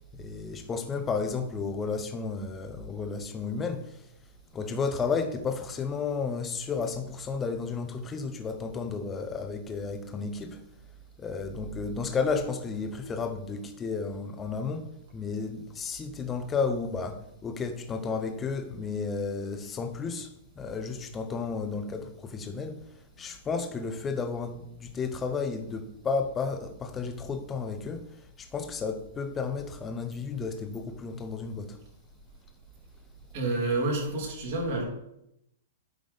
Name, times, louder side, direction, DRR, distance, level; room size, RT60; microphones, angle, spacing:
voice 1, 0.1-4.0 4.5-10.6 11.2-22.8 23.2-31.8, left 5 dB, 20° left, 0.8 m, -32 dB
voice 2, 33.3-34.8, right 2 dB, 55° right, 2.7 m, -28 dB
9.4 x 3.7 x 3.5 m
hypercardioid pair, 125°, 0 cm